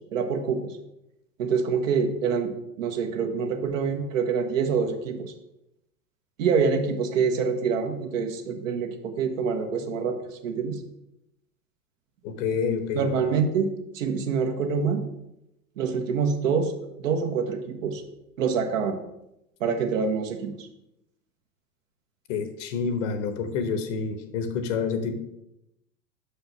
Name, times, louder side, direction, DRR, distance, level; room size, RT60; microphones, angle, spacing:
voice 1, 0.1-0.7 1.4-2.5 2.8-5.3 6.4-10.2 10.4-10.8 12.9-13.7 13.9-15.0 15.8-16.7 17.0-18.0 18.4-19.0 19.6-20.7, right 5 dB, 55° right, 5 dB, 1.2 m, -26 dB
voice 2, 12.2-13.3 22.3-25.1, left 5 dB, 50° left, 8 dB, 1.1 m, -28 dB
5.7 x 5.2 x 5.8 m, 0.86 s
figure-of-eight pair, 90°, 47 cm